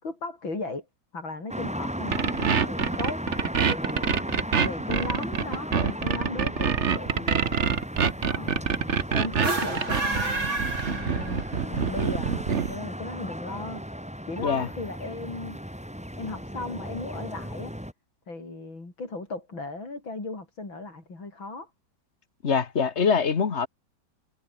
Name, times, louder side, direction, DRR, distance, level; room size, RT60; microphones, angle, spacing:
voice 1, 0.0-0.9 1.1-3.2 3.6-4.2 4.6-7.8 8.3-13.8 14.3-15.6 16.2-17.7 18.3-21.7, left 3 dB, 80° left, 6.8 m, -37 dB
sound 1, 1.5-17.9, equal, 5° right, 5.2 m, -36 dB
sound 2, 2.1-12.7, right 6 dB, 40° right, 1.4 m, -26 dB
sound 3, 9.3-11.7, right 2 dB, 80° right, 7.4 m, -30 dB
voice 2, 22.4-23.7, left 6 dB, 40° left, 1.6 m, -24 dB
omnidirectional pair, 2.1 m